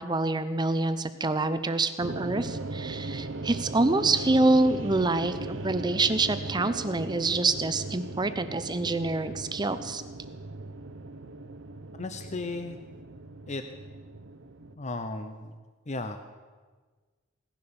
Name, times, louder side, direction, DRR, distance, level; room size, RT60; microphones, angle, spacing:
voice 1, 0.0-10.0, right 2 dB, 20° right, 11 dB, 0.7 m, -26 dB
sound 1, 2.0-14.8, right 2 dB, 65° right, 0.8 m, -38 dB
voice 2, 12.0-12.8 13.5-13.6 14.8-15.5 15.9-16.2, left 2 dB, 35° left, 7 dB, 0.8 m, -35 dB
17.5 x 10.5 x 7.0 m, 1.4 s
head